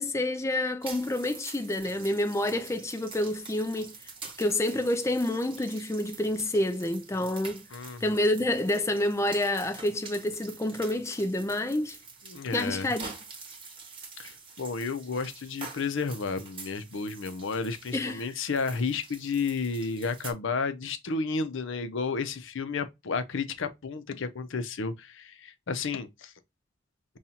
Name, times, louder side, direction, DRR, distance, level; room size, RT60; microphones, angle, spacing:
voice 1, 0.0-3.9 4.4-7.6 8.0-12.0 12.5-13.1 17.9-18.3, left 1 dB, 15° left, 0.4 m, -28 dB
sound 1, 0.8-20.3, right 4 dB, 25° right, 1.0 m, -46 dB
voice 2, 7.7-8.0 12.3-12.9 14.2-26.3, left 4 dB, 65° left, 0.6 m, -32 dB
5.4 x 2.3 x 2.8 m
head